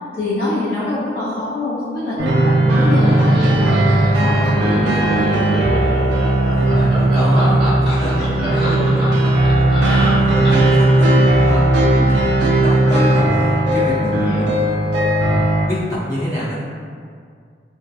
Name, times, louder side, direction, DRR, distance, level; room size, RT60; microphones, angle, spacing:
voice 1, 0.1-3.8 4.1-5.2 14.0-14.5, left 2 dB, 50° left, -14 dB, 0.7 m, -24 dB
sound 1, 2.2-15.7, right 1 dB, 75° right, 0.3 m, -16 dB
Laughter, 2.9-10.8, equal, 25° right, 1.2 m, -25 dB
voice 2, 6.5-14.5 15.2-16.6, equal, 20° left, -10 dB, 0.7 m, -26 dB
2.6 x 2.2 x 2.3 m, 2.1 s
head